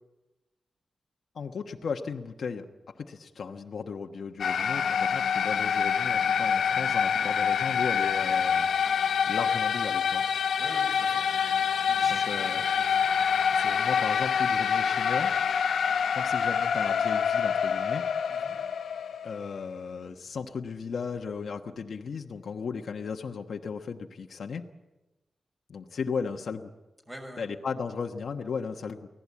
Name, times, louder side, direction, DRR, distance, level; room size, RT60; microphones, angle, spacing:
voice 1, 1.3-2.7 3.0-8.7 9.3-10.2 12.1-12.6 13.5-15.3 16.1-18.1 19.2-24.7 25.7-26.7 27.4-29.1, left 5 dB, 65° left, 3 dB, 1.2 m, -35 dB
sound 1, 4.4-19.7, left 7 dB, 90° left, 0.9 m, -26 dB
voice 2, 10.6-13.0 18.3-18.6 27.1-27.4, equal, 15° right, 2 dB, 6.3 m, -46 dB
24.0 x 17.0 x 8.5 m, 1.1 s
wide cardioid pair, 100°, 0 cm